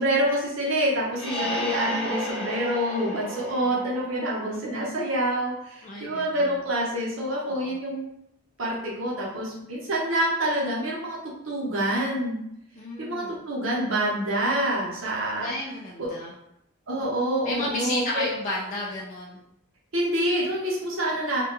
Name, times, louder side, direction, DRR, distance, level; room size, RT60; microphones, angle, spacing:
voice 1, 0.0-8.1 8.6-11.2 11.5-12.4 13.0-15.5 16.0-16.1 16.9-18.3 19.9-21.4, right 1 dB, 70° right, -4 dB, 0.7 m, -27 dB
sound 1, 1.1-4.7, right 1 dB, 5° left, 0.8 m, -33 dB
voice 2, 1.4-1.8 3.4-3.8 4.5-4.6 5.8-6.6 7.5-7.8 12.8-13.4 15.4-16.3 17.0-17.1 17.4-19.4, left 1 dB, 40° left, -5 dB, 0.3 m, -33 dB
2.2 x 2.1 x 2.9 m, 0.80 s
head